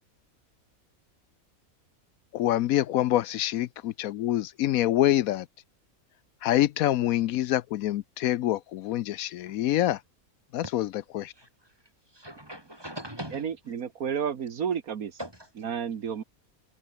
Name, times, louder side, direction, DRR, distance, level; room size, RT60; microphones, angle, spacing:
voice 1, 2.3-5.5 6.4-10.0 10.5-10.9 11.1-11.3, left 13 dB, 80° left, 1.0 m, -26 dB
voice 2, 11.3-11.7 12.1-13.5 15.2-15.5, right 1 dB, 15° right, 6.4 m, -41 dB
voice 3, 13.3-15.2 15.6-16.2, right 7 dB, 75° right, 1.7 m, -31 dB
omnidirectional pair, 1.5 m